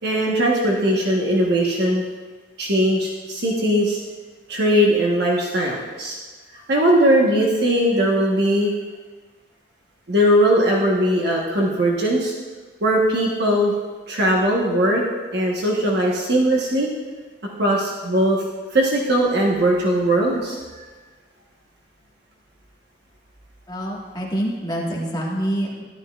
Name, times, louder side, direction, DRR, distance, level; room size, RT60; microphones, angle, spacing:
voice 1, 0.0-2.0 2.6-4.0 4.5-6.2 6.7-8.7 10.1-12.3 12.8-13.7 14.1-15.0 15.3-16.9 17.6-18.4 18.7-20.6, right 1 dB, 65° right, -2 dB, 1.2 m, -19 dB
voice 2, 23.7-25.8, equal, 25° left, -3 dB, 1.6 m, -26 dB
12.5 x 11.5 x 2.4 m, 1.4 s
head